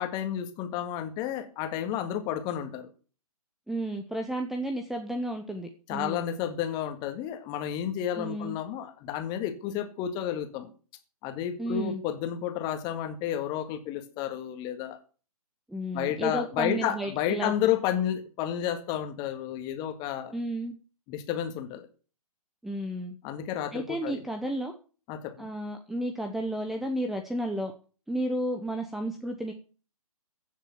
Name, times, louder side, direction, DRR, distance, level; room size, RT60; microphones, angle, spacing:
voice 1, 0.0-2.9 5.9-10.7 11.2-15.0 15.9-20.3 21.1-21.9 23.2-24.3 25.1-25.5, left 10 dB, 20° left, 8 dB, 1.9 m, -31 dB
voice 2, 3.7-6.2 8.2-8.6 11.6-12.0 15.7-17.5 17.9-18.1 20.3-20.7 22.6-23.2 23.7-24.7 25.4-27.7 28.1-29.5, right 1 dB, ahead, 6 dB, 0.8 m, -32 dB
15.5 x 7.4 x 7.2 m, 0.39 s
figure-of-eight pair, 135°, 19 cm